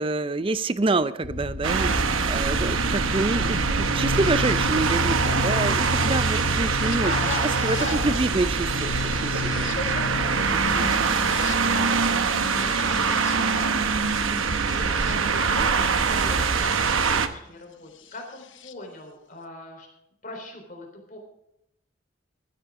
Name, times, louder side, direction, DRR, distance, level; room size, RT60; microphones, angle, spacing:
voice 1, 0.0-7.1 7.6-9.7 10.5-10.9, right 2 dB, 25° right, 15 dB, 0.4 m, -27 dB
sound 1, 1.2-17.0 18.1-18.7, left 4 dB, 70° left, 0.7 m, -33 dB
sound 2, 1.6-17.3, right 5 dB, 85° right, 1.0 m, -24 dB
voice 2, 6.8-8.2 9.8-19.9 20.2-21.2, left 2 dB, 40° left, 2 dB, 3.7 m, -39 dB
16.5 x 12.5 x 3.7 m, 0.80 s
head